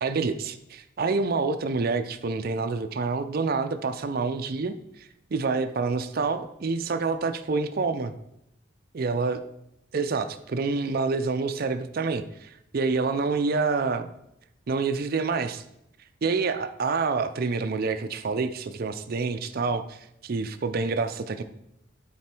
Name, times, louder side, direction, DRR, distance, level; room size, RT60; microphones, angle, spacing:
voice 1, 0.0-8.1 8.9-9.4 9.9-14.1 14.7-15.6 16.2-21.4, right 4 dB, 50° right, 9 dB, 0.5 m, -27 dB
9.5 x 4.2 x 4.4 m, 0.79 s
head